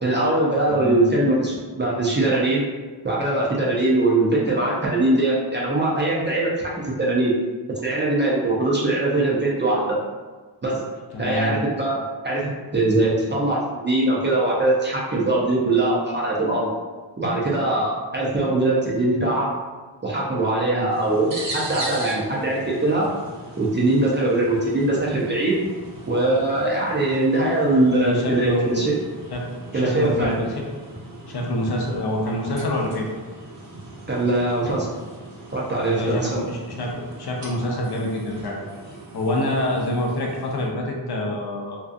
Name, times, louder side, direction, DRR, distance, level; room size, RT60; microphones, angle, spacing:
voice 1, 0.0-2.7 3.0-6.5 6.8-7.3 7.8-10.0 10.6-10.8 11.2-12.0 12.2-16.7 17.2-19.5 20.0-23.1 23.6-25.6 26.1-28.9 29.7-30.3 34.1-34.9 35.5-36.4, right 2 dB, 25° right, -5 dB, 0.4 m, -21 dB
voice 2, 0.7-1.1 11.1-11.6 28.0-28.9 29.3-29.4 29.7-30.5 31.3-33.1 35.8-41.8, left 1 dB, 60° left, -1 dB, 0.5 m, -26 dB
sound 1, 20.9-40.7, right 2 dB, 65° right, 0.8 m, -39 dB
2.6 x 2.3 x 2.4 m, 1.4 s
wide cardioid pair, 135°, 46 cm